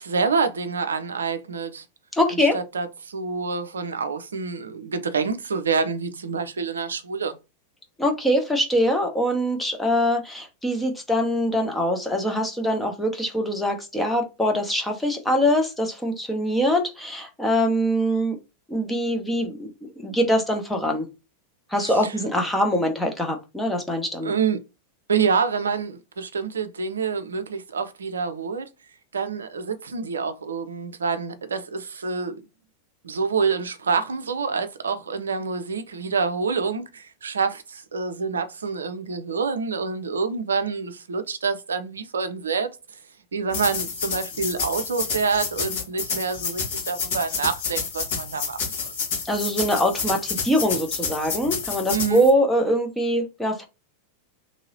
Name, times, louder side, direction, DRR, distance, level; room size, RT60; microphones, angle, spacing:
voice 1, 0.0-1.8 2.5-7.4 21.8-22.1 24.2-24.6 25.1-28.7 29.1-32.5 33.0-42.7 43.3-48.9 51.9-52.3, right 5 dB, 70° right, 0.5 m, -27 dB
voice 2, 2.1-2.6 8.0-18.4 18.7-21.1 21.7-24.3 49.2-53.7, equal, 5° left, 0.8 m, -23 dB
sound 1, 43.5-52.3, left 5 dB, 55° left, 1.3 m, -29 dB
3.0 x 2.8 x 2.7 m
figure-of-eight pair, 90°, 0 cm